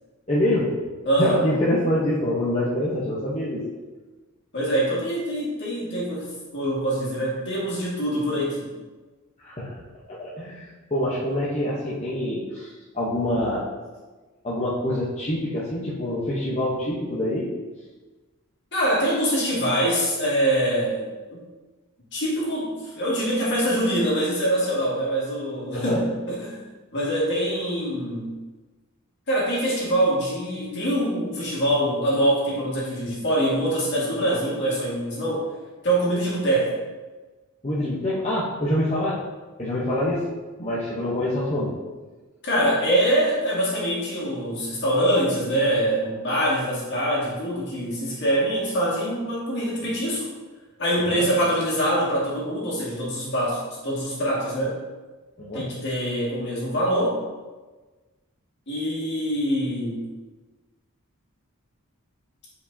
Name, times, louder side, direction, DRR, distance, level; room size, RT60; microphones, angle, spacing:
voice 1, 0.3-0.7 1.2-3.6 9.4-9.8 10.1-13.7 14.4-17.5 25.7-26.1 37.6-39.2 39.6-40.3 40.6-41.8 51.1-51.3 55.4-55.7, left 1 dB, 30° left, -7 dB, 0.9 m, -25 dB
voice 2, 1.0-1.4 4.5-6.3 6.5-8.7 18.7-21.4 22.1-26.6 26.9-28.3 29.3-35.5 35.8-36.7 42.4-50.3 50.8-54.8 55.5-57.2 58.7-60.0, right 1 dB, 55° left, -6 dB, 2.1 m, -24 dB
8.0 x 4.8 x 2.8 m, 1.3 s
head